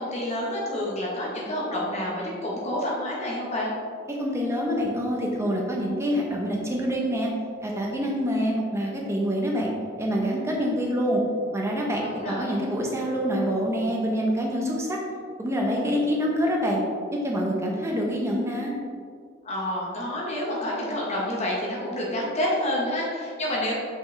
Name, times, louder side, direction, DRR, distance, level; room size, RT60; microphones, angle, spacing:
voice 1, 0.0-3.7 12.0-12.6 19.4-23.7, left 1 dB, 35° left, -4 dB, 1.1 m, -28 dB
voice 2, 4.1-7.3 7.6-9.7 10.0-11.2 11.5-15.0 15.4-16.8 17.1-18.7, equal, 15° right, -2 dB, 0.9 m, -26 dB
5.9 x 5.1 x 3.3 m, 2.1 s
head